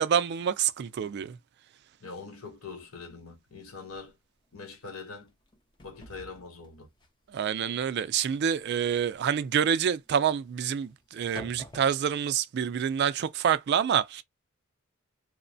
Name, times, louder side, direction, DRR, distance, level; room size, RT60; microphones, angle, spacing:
voice 1, 0.0-1.4 7.3-14.2, right 8 dB, 50° right, 0.3 m, -27 dB
voice 2, 2.0-4.2 4.5-5.3 5.8-6.9, left 4 dB, 85° left, 0.8 m, -43 dB
sound 1, 2.8-2.9 3.3-3.4 3.9-4.1 4.5-4.8 5.1-12.4, left 1 dB, 20° left, 0.5 m, -50 dB
3.0 x 2.1 x 2.6 m
head